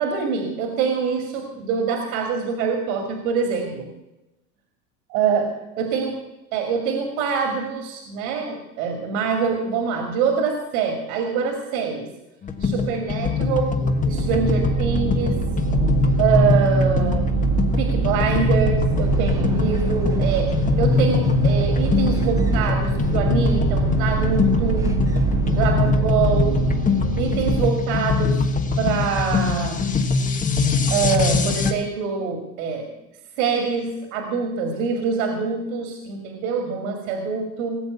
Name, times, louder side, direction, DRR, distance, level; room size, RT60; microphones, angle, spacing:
voice 1, 0.0-3.9 5.1-5.5 5.8-6.2 6.5-12.1 12.6-13.8 14.0-15.4 16.2-17.3 17.8-20.5 20.8-24.9 25.5-26.6 27.2-28.4 28.8-29.9 30.9-32.9 33.4-37.8, right 5 dB, 70° right, 4 dB, 2.7 m, -24 dB
sound 1, 12.4-31.7, left 4 dB, 20° left, 1.3 m, -22 dB
sound 2, 14.0-27.7, right 6 dB, 50° right, 1.7 m, -25 dB
sound 3, 18.9-25.9, right 1 dB, 10° right, 1.0 m, -32 dB
19.0 x 7.9 x 8.2 m, 0.98 s
supercardioid pair, 140°, 42 cm